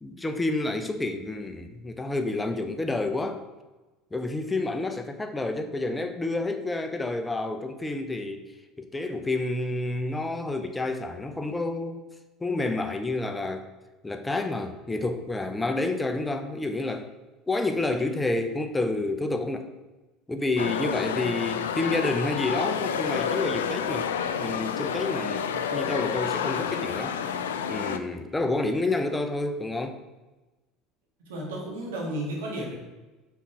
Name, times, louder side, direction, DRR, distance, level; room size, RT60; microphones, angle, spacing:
voice 1, 0.0-3.4 4.1-8.4 8.8-12.0 12.4-13.7 14.0-17.1 17.5-19.7 20.3-24.1 24.4-27.2 27.7-30.0, left 2 dB, 15° left, 7 dB, 0.7 m, -29 dB
sound 1, 20.6-28.0, left 7 dB, 75° left, 0.3 m, -29 dB
voice 2, 31.2-32.7, right 1 dB, 75° right, -3 dB, 1.8 m, -33 dB
5.7 x 4.2 x 4.8 m, 1.1 s
figure-of-eight pair, 70°, 0 cm